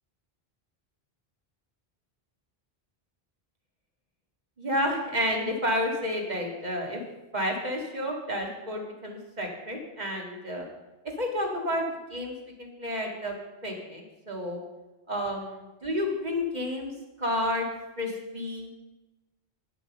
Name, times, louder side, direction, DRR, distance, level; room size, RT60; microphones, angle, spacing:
voice 1, 4.6-7.0 7.3-10.7 11.2-13.3 13.6-14.6 15.1-16.9 17.2-17.7 18.0-18.7, left 1 dB, 45° right, 0 dB, 2.1 m, -30 dB
9.5 x 7.7 x 6.6 m, 1.1 s
omnidirectional pair, 1.0 m